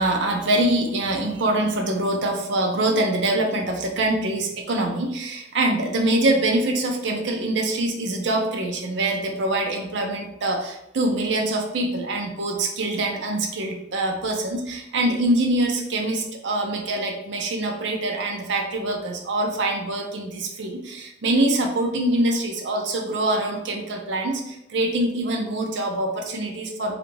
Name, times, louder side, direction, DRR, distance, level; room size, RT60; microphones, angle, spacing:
voice 1, 0.0-26.9, right 1 dB, 65° right, 2 dB, 0.5 m, -24 dB
2.5 x 2.2 x 3.1 m, 0.86 s
head